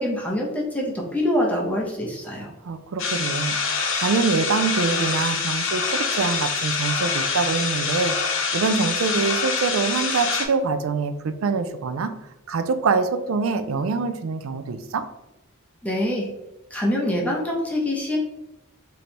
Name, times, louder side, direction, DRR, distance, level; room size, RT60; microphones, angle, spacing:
voice 1, 0.0-2.5 15.8-16.3 16.7-18.2, left 1 dB, 5° left, -2 dB, 0.6 m, -25 dB
voice 2, 2.6-8.2 8.5-12.1 12.5-15.0, right 4 dB, 70° right, 10 dB, 0.4 m, -25 dB
sound 1, 3.0-10.5, left 5 dB, 65° left, 0.7 m, -25 dB
3.2 x 2.7 x 4.2 m, 0.95 s
head